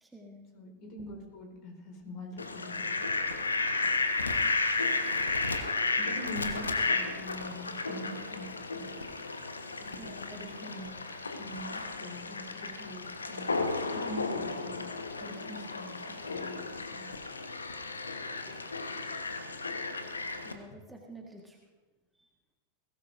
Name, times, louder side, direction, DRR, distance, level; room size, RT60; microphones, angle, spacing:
voice 1, 0.0-0.5 10.0-10.4 20.4-21.6 22.2-22.3, right 1 dB, 10° right, 0 dB, 1.6 m, -49 dB
voice 2, 0.5-3.2 6.0-8.9 9.8-10.9 11.4-13.6 13.9-16.6 16.9-17.2, left 1 dB, 40° left, 3 dB, 4.4 m, -44 dB
Fowl, 2.4-20.5, left 3 dB, 75° left, 1.2 m, -33 dB
21.5 x 17.5 x 2.7 m, 1.3 s
figure-of-eight pair, 90°, 0 cm